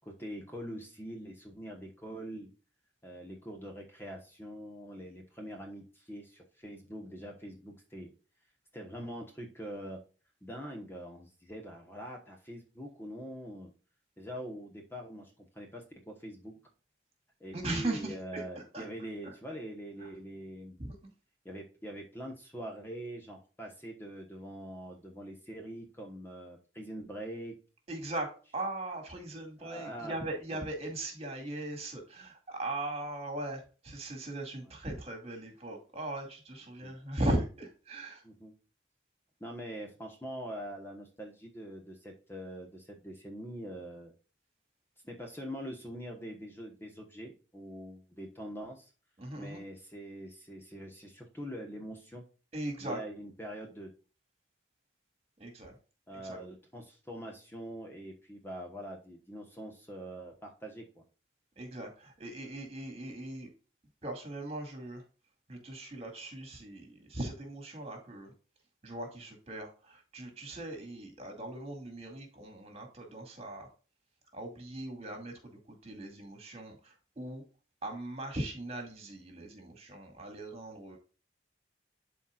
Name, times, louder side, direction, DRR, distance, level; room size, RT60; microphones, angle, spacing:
voice 1, 0.0-2.5 3.0-8.1 8.7-10.0 10.4-13.7 14.2-16.6 17.4-20.8 21.4-27.6 29.6-30.2 30.5-30.6 36.8-36.9 38.2-38.5 39.4-44.1 45.1-48.9 49.4-52.2 52.8-53.9 56.1-61.0, equal, 10° left, 2 dB, 1.1 m, -44 dB
voice 2, 17.5-18.9 19.2-19.3 20.8-21.0 27.9-38.2 49.2-49.6 52.5-53.0 55.4-55.8 56.2-56.4 61.6-63.5 64.0-65.0 65.5-68.3 68.8-73.7 74.3-77.4 77.8-81.0, right 1 dB, 30° right, 3 dB, 2.2 m, -39 dB
12.0 x 4.2 x 2.4 m, 0.35 s
head